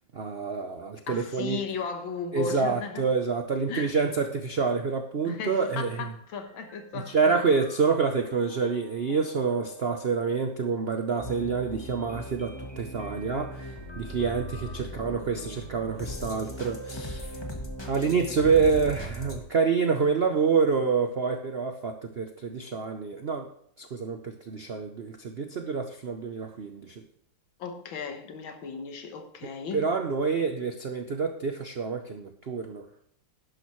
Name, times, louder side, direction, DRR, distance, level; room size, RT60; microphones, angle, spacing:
voice 1, 0.1-1.6 2.3-6.0 7.1-17.4 17.9-23.5 23.8-27.0 29.7-32.9, right 5 dB, 65° right, 0.6 m, -27 dB
voice 2, 1.1-3.1 3.7-3.9 5.2-7.5 27.6-29.9, left 5 dB, 80° left, 2.0 m, -36 dB
sound 1, 6.4-19.4, equal, 20° left, 1.0 m, -40 dB
11.5 x 10.5 x 3.1 m
omnidirectional pair, 2.1 m